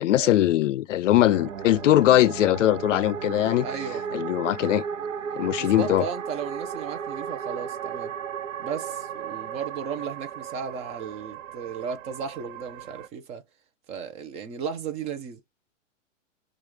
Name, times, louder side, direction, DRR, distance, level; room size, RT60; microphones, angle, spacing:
voice 1, 0.0-3.7 4.1-4.8 5.4-6.1, left 13 dB, 70° left, 0.5 m, -21 dB
sound 1, 1.1-13.1, right 7 dB, 85° right, 0.8 m, -35 dB
voice 2, 3.6-4.2 5.6-8.1 8.6-13.4 13.9-15.4, right 6 dB, 15° right, 0.6 m, -35 dB
4.7 x 2.5 x 2.9 m
hypercardioid pair, 140°, 39 cm